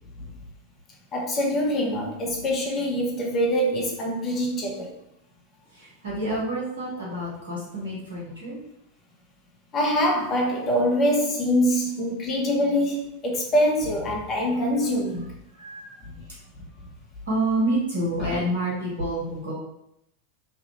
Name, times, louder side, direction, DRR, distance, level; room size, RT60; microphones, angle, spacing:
voice 1, 1.1-4.9 9.7-15.3 18.3-18.4, equal, 30° left, -1 dB, 0.9 m, -24 dB
voice 2, 5.7-8.6 15.6-16.0 17.3-19.5, right 1 dB, 75° right, -5 dB, 1.4 m, -28 dB
3.0 x 2.4 x 3.1 m, 0.80 s
figure-of-eight pair, 90°, 0 cm